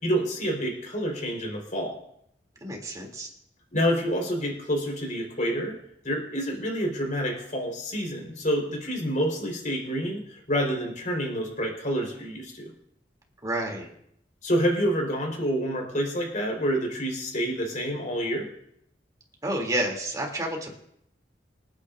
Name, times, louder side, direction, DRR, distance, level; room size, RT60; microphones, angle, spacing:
voice 1, 0.0-2.0 3.7-5.7 6.0-12.7 14.4-18.5, equal, 45° left, 1 dB, 4.5 m, -28 dB
voice 2, 2.6-3.3 13.4-13.9 19.4-20.8, right 1 dB, 20° right, 0 dB, 3.1 m, -30 dB
27.5 x 9.7 x 2.7 m, 0.74 s
head